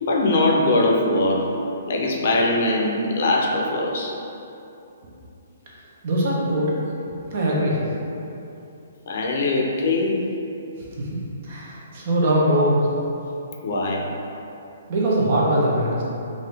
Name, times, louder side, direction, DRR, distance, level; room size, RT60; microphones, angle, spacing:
voice 1, 0.0-1.5 1.9-4.1 9.1-10.2 13.6-14.1, left 2 dB, 55° left, -1 dB, 0.5 m, -21 dB
voice 2, 6.0-6.7 7.3-7.8 10.9-12.9 14.9-16.0, right 1 dB, 40° right, -5 dB, 0.8 m, -21 dB
3.8 x 2.6 x 3.3 m, 2.8 s
hypercardioid pair, 165°, 0 cm